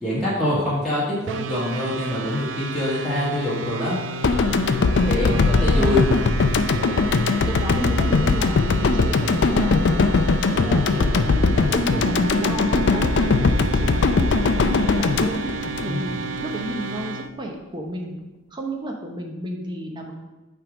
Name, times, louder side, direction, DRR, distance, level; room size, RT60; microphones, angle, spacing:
voice 1, 0.0-4.0 5.0-6.1 6.7-7.0 10.4-11.0 15.8-16.2, left 1 dB, ahead, -10 dB, 1.6 m, -25 dB
sound 1, 1.3-17.3, right 3 dB, 65° right, 0.4 m, -33 dB
sound 2, 4.2-16.4, left 4 dB, 60° left, 0.4 m, -20 dB
voice 2, 5.3-6.0 7.4-10.2 10.6-11.4 11.7-15.5 15.8-18.2 18.5-20.2, right 1 dB, 25° right, 1 dB, 0.9 m, -31 dB
Wind instrument woodwind instrument, 11.7-17.1, right 6 dB, 45° right, 1.3 m, -34 dB
8.8 x 3.6 x 5.0 m, 1.1 s
head